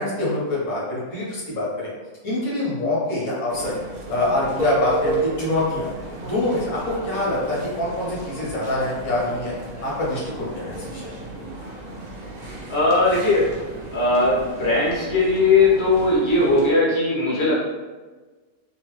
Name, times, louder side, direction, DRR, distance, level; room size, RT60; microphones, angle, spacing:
voice 1, 0.0-1.9 2.2-3.7 4.1-5.9 6.2-9.5 9.8-11.1, left 2 dB, 85° left, -5 dB, 1.6 m, -25 dB
sound 1, 3.5-16.7, right 2 dB, 50° right, 0.5 m, -34 dB
voice 2, 12.7-13.4 13.9-17.6, left 2 dB, 25° left, -7 dB, 0.9 m, -19 dB
3.0 x 2.8 x 3.0 m, 1.3 s
omnidirectional pair, 1.5 m